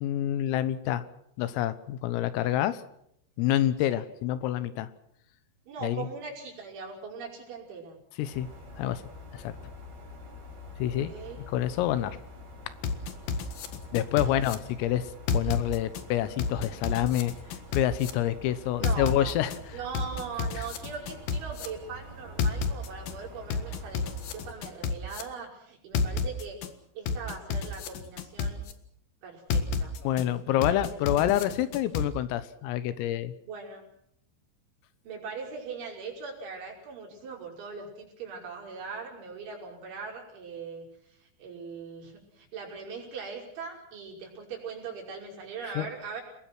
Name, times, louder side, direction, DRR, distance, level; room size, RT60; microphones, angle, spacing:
voice 1, 0.0-1.1 1.4-2.8 3.4-4.9 5.8-6.1 8.2-8.5 8.8-9.0 9.3-9.6 10.8-11.1 11.5-12.2 13.9-15.1 15.3-17.3 17.7-19.5 30.0-33.3 45.8-45.9, left 12 dB, 85° left, 14 dB, 3.8 m, -27 dB
voice 2, 5.7-8.0 10.9-11.4 14.2-14.4 18.8-19.4 19.7-26.6 26.9-28.7 29.2-31.5 33.5-33.9 35.0-46.2, right 5 dB, 65° right, -2 dB, 8.0 m, -41 dB
sound 1, 8.3-24.5, left 2 dB, 50° right, 7.4 m, -46 dB
sound 2, 12.8-14.6 15.3-16.0 16.4-18.1 18.8-19.6 19.9-21.7 22.4-23.1 23.5-25.2 25.9-26.7 27.1-28.7 29.5-30.2 30.6-32.1, left 5 dB, 60° left, 2.7 m, -30 dB
29.5 x 20.5 x 6.1 m, 0.72 s
omnidirectional pair, 5.9 m